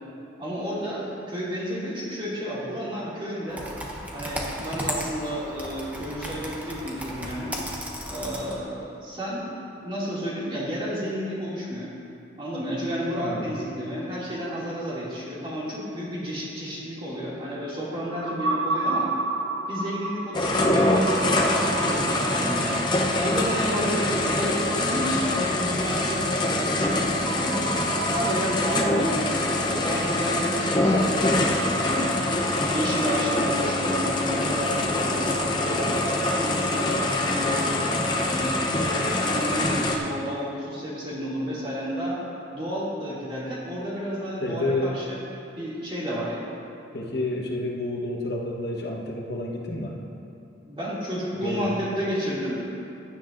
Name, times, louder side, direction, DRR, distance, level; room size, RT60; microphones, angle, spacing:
voice 1, 0.4-3.6 4.1-7.5 8.1-9.5 9.8-11.9 12.4-19.1 19.7-22.8 23.2-27.7 28.1-32.1 32.6-37.9 38.3-42.2 42.5-45.2 45.6-46.5 50.7-52.6, equal, 25° right, -7 dB, 2.4 m, -31 dB
Computer keyboard, 3.5-8.6, equal, 10° right, 0.9 m, -35 dB
voice 2, 13.1-13.5 23.8-24.2 44.4-45.0 46.9-50.0 51.3-51.7, left 1 dB, 60° left, -1 dB, 1.2 m, -30 dB
sound 1, 18.1-37.0, right 3 dB, 75° right, 0.7 m, -35 dB
sound 2, 20.3-40.0, left 1 dB, 25° left, 0.7 m, -24 dB
15.5 x 10.0 x 2.6 m, 2.6 s
head